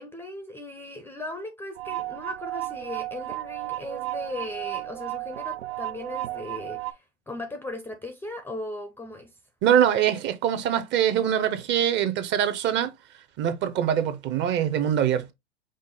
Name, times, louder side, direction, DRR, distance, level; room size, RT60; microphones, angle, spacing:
voice 1, 0.0-9.3, left 2 dB, 5° left, 0.5 m, -37 dB
sound 1, 1.8-6.9, right 17 dB, 75° right, 0.6 m, -33 dB
voice 2, 9.6-12.9 13.4-15.3, right 10 dB, 35° right, 0.7 m, -23 dB
5.2 x 2.0 x 3.8 m
hypercardioid pair, 105°, 34 cm